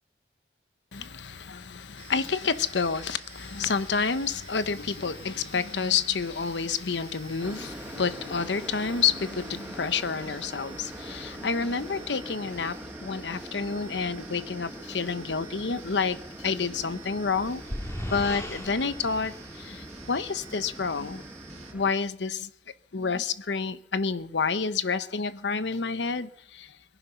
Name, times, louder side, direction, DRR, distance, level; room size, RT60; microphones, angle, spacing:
voice 1, 0.9-17.6 18.1-21.2 21.7-22.5 22.9-26.7, left 5 dB, 85° left, 0.9 m, -29 dB
sound 1, 2.0-21.7, right 6 dB, 40° right, 2.1 m, -50 dB
sound 2, 7.4-21.9, right 1 dB, 10° right, 1.3 m, -43 dB
sound 3, 17.1-20.5, equal, 15° left, 2.3 m, -38 dB
22.0 x 10.5 x 5.7 m
head